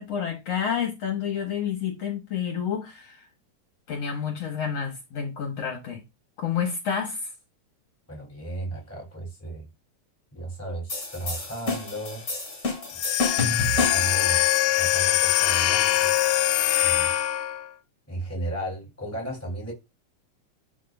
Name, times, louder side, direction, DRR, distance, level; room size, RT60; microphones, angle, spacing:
voice 1, 0.0-3.3 3.9-6.0 6.4-7.3, left 7 dB, 60° left, 2.4 m, -29 dB
voice 2, 8.1-9.7 10.3-12.3 13.4-14.5 14.8-16.1 16.8-17.1 18.1-19.7, right 1 dB, 5° left, 3.6 m, -34 dB
sound 1, 10.9-14.2, left 3 dB, 30° left, 3.0 m, -29 dB
sound 2, 12.9-17.7, left 15 dB, 85° left, 1.9 m, -23 dB
11.5 x 4.7 x 2.6 m
omnidirectional pair, 3.3 m